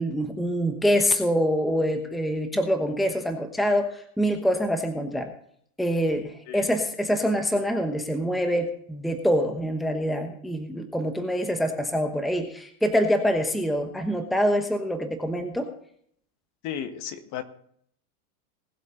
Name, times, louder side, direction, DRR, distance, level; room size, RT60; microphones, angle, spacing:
voice 1, 0.0-5.3 5.8-15.7, equal, ahead, 6 dB, 1.1 m, -25 dB
voice 2, 16.6-17.4, left 9 dB, 40° left, 9 dB, 1.6 m, -33 dB
19.5 x 7.6 x 3.9 m, 0.64 s
supercardioid pair, 130°, 44 cm